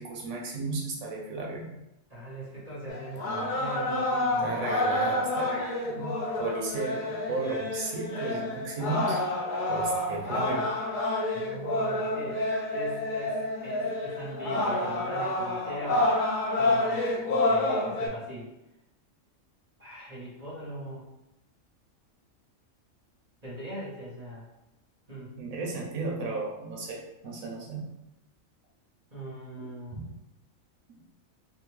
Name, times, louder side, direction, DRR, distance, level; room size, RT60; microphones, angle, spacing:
voice 1, 0.0-1.7 4.4-9.2 9.7-10.6 25.4-27.9 29.9-30.0 30.9-31.0, right 3 dB, 90° right, -1 dB, 1.2 m, -34 dB
voice 2, 2.1-4.6 9.9-10.1 11.3-12.4 12.7-16.1 16.6-18.5 19.8-21.1 23.4-24.4 25.1-25.3 29.1-30.0, right 1 dB, 35° right, -8 dB, 1.0 m, -41 dB
sound 1, 2.9-18.1, left 2 dB, 55° left, 0.5 m, -29 dB
3.3 x 2.1 x 3.1 m, 0.90 s
omnidirectional pair, 1.4 m